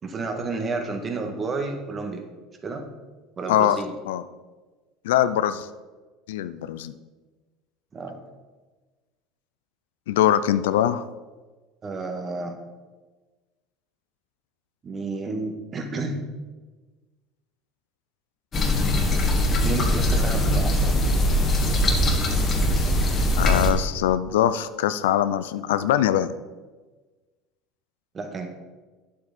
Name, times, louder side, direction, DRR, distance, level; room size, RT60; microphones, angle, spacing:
voice 1, 0.0-2.2 2.6-2.9 3.4-3.9 7.9-8.2 11.8-12.6 14.8-16.2 19.6-21.0 28.1-28.5, right 3 dB, 35° right, 4 dB, 1.6 m, -31 dB
voice 2, 5.0-5.7 6.3-6.9 10.1-11.0 23.4-26.3, left 11 dB, 80° left, 13 dB, 0.4 m, -22 dB
sound 1, 18.5-23.7, left 1 dB, 35° left, 1.6 m, -21 dB
9.5 x 7.5 x 4.2 m, 1.3 s
hypercardioid pair, 80°, 0 cm